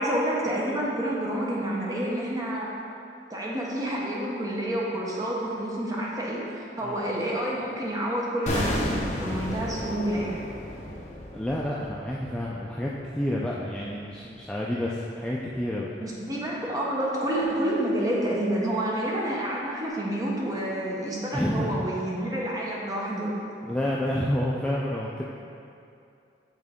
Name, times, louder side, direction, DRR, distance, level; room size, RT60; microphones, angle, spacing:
voice 1, 0.0-2.7 3.3-8.9 9.2-10.4 16.0-23.4 23.6-23.7, right 1 dB, 20° right, -4 dB, 0.9 m, -29 dB
sound 1, 8.5-13.5 13.7-13.9, left 1 dB, 40° left, 0.8 m, -33 dB
voice 2, 11.3-15.9 21.3-22.0 23.6-25.2, left 1 dB, 5° left, -5 dB, 0.3 m, -29 dB
8.1 x 3.7 x 3.5 m, 2.6 s
head